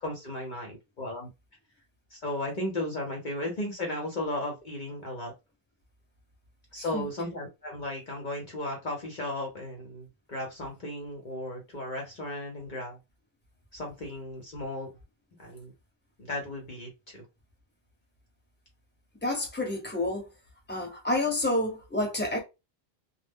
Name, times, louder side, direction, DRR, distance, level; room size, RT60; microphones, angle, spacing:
voice 1, 0.0-1.3 2.1-5.3 6.7-13.0 13.7-14.9 15.4-15.7 16.2-17.2, left 1 dB, 50° left, 0.8 m, -35 dB
voice 2, 19.2-20.3 20.7-22.4, left 1 dB, 10° left, 0.9 m, -29 dB
2.2 x 2.0 x 3.4 m
omnidirectional pair, 1.2 m